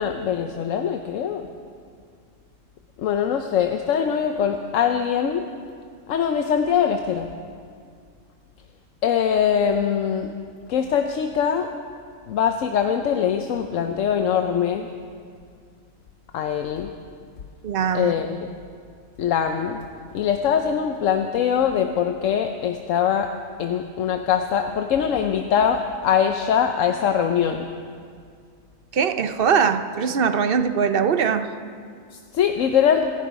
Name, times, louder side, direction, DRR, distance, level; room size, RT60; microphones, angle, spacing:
voice 1, 0.0-1.5 3.0-5.4 6.1-7.3 9.0-10.3 10.7-11.7 12.3-14.9 16.3-16.9 17.9-18.5 19.2-19.8 20.1-23.3 23.6-27.7 32.3-33.1, left 8 dB, 80° left, 6 dB, 1.1 m, -22 dB
voice 2, 17.6-18.1 28.9-31.5, right 6 dB, 55° right, 9 dB, 0.8 m, -21 dB
25.0 x 11.0 x 5.1 m, 2.2 s
omnidirectional pair, 1.3 m